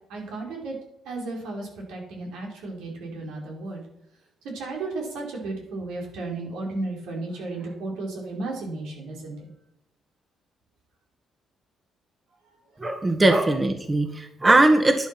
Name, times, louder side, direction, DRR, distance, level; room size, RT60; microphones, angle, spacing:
voice 1, 0.1-0.8 1.0-3.8 4.5-9.5, right 2 dB, 90° right, -1 dB, 4.9 m, -34 dB
voice 2, 12.8-15.1, right 2 dB, 20° right, 7 dB, 1.5 m, -20 dB
11.0 x 10.5 x 6.0 m, 0.78 s
cardioid pair, 90°, 0 cm